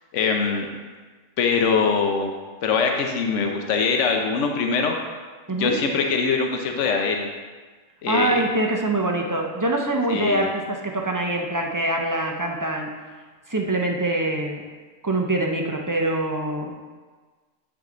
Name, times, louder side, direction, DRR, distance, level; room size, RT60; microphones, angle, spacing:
voice 1, 0.1-0.7 1.4-2.3 2.6-5.0 5.6-7.3 8.0-8.4 10.1-10.5, left 5 dB, 65° left, 3 dB, 1.1 m, -22 dB
voice 2, 8.1-12.9 13.5-14.6 15.0-16.7, right 2 dB, 25° right, 1 dB, 0.4 m, -24 dB
8.9 x 6.4 x 3.9 m, 1.4 s
omnidirectional pair, 1.4 m